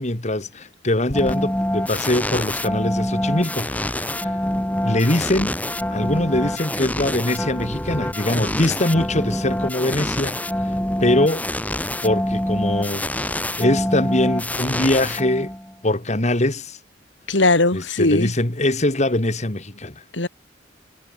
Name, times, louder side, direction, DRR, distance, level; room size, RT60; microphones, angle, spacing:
voice 1, 0.0-4.3 4.8-5.5 5.9-10.8 11.0-11.4 12.0-13.1 13.3-15.5 15.8-16.8 17.7-20.0, left 1 dB, 40° left, 2.3 m, -22 dB
sound 1, 1.1-15.7, left 1 dB, 10° left, 5.2 m, -25 dB
voice 2, 17.3-18.3 20.1-20.3, left 2 dB, 80° left, 3.0 m, -19 dB
head